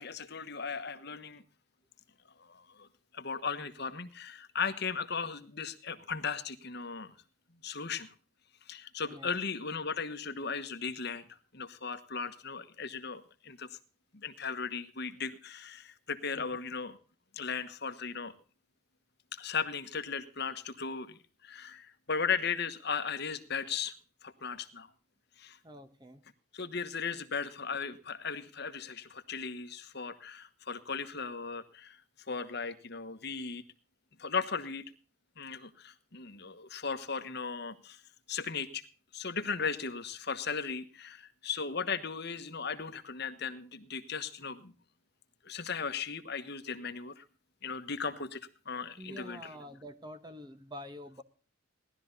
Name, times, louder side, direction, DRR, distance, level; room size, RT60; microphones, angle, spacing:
voice 1, 0.0-1.4 2.4-2.9 3.1-7.1 7.6-8.1 8.6-13.8 14.1-17.0 17.3-18.3 19.3-23.9 24.2-24.9 25.4-25.6 26.5-32.0 32.3-33.6 34.2-34.8 35.4-38.0 38.3-38.8 39.1-44.7 45.4-47.2 47.6-49.5, left 5 dB, 50° left, 10 dB, 1.3 m, -37 dB
voice 2, 25.6-26.2 49.0-51.2, equal, 20° right, 9 dB, 1.2 m, -47 dB
18.0 x 12.5 x 4.0 m, 0.38 s
head